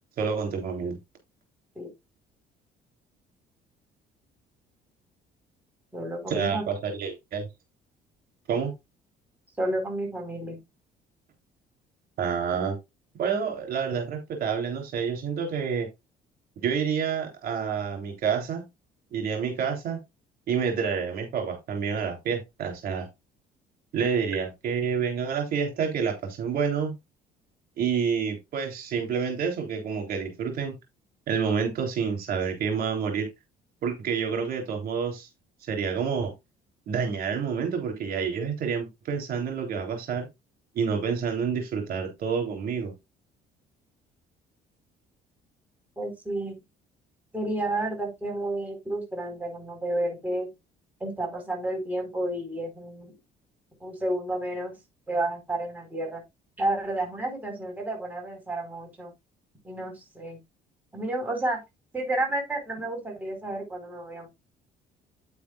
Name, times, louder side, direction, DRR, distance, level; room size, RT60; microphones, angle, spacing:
voice 1, 0.2-1.0 6.3-7.4 8.5-8.7 12.2-12.8 13.2-15.9 16.6-18.6 19.1-20.0 20.5-23.1 23.9-26.9 27.8-30.7 31.3-33.3 33.8-35.3 35.7-36.3 36.9-40.3 40.7-42.9, right 6 dB, 60° right, 3.4 m, -28 dB
voice 2, 5.9-6.6 9.6-10.6 46.0-46.6 47.3-50.5 51.0-53.1 53.8-54.8 55.1-56.2 56.6-59.1 59.6-60.4 60.9-61.6 61.9-64.3, right 1 dB, 10° right, 4.5 m, -31 dB
9.2 x 8.4 x 2.4 m
cardioid pair, 110°, 17 cm